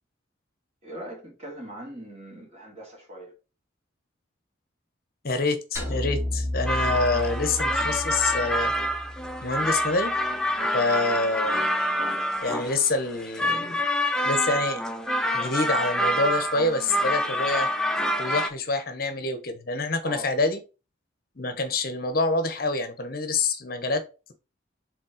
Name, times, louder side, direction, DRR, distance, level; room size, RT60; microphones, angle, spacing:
voice 1, 0.8-3.3 11.1-11.3 20.0-20.3, right 1 dB, 35° right, 2.4 m, -40 dB
voice 2, 5.2-8.7 9.4-10.1 10.7-11.6 12.4-13.8 14.2-14.8 15.3-17.7 18.2-20.6 21.4-24.0, left 3 dB, 50° left, 0.9 m, -26 dB
sound 1, 5.8-10.1, left 1 dB, 15° right, 1.8 m, -32 dB
sound 2, 6.7-18.5, equal, 5° left, 0.5 m, -27 dB
5.2 x 3.7 x 4.9 m
head